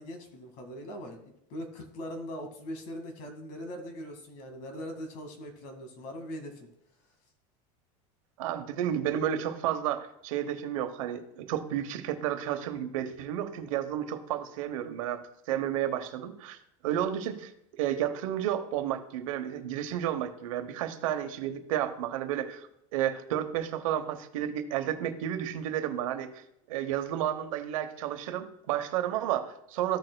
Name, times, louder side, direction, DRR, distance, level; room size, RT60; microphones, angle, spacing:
voice 1, 0.0-6.7 15.5-15.8, equal, 55° left, 4 dB, 2.0 m, -41 dB
voice 2, 8.4-15.2 15.5-16.6 16.8-17.5 17.8-22.7 22.9-26.4 26.7-30.0, right 11 dB, 85° right, 8 dB, 1.0 m, -31 dB
15.0 x 6.6 x 2.3 m, 0.80 s
supercardioid pair, 150°, 17 cm